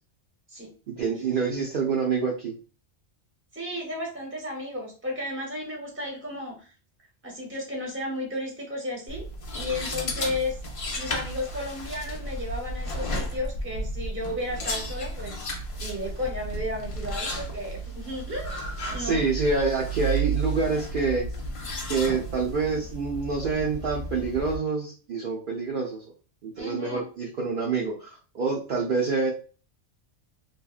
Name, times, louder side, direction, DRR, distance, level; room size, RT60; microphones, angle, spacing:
voice 1, 0.9-2.5 18.9-21.3 21.9-26.1 26.4-29.3, right 4 dB, 60° right, -3 dB, 0.6 m, -27 dB
voice 2, 3.5-6.7 7.2-9.2 9.5-10.6 11.0-15.4 15.8-19.3 26.6-27.1, left 1 dB, 15° right, 0 dB, 0.7 m, -33 dB
sound 1, 9.1-24.6, right 1 dB, 60° left, 0.3 m, -33 dB
2.7 x 2.3 x 2.3 m, 0.37 s
omnidirectional pair, 1.2 m